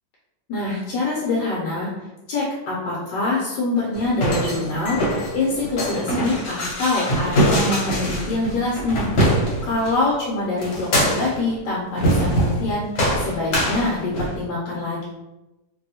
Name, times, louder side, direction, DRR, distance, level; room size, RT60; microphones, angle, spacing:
voice 1, 0.5-1.9 2.3-15.0, left 2 dB, 75° left, -5 dB, 1.3 m, -25 dB
sound 1, 3.9-9.9 10.6-11.4 12.0-12.7 13.0-14.4, equal, 55° left, 1.3 m, -23 dB
3.0 x 2.7 x 2.7 m, 1.0 s
omnidirectional pair, 2.0 m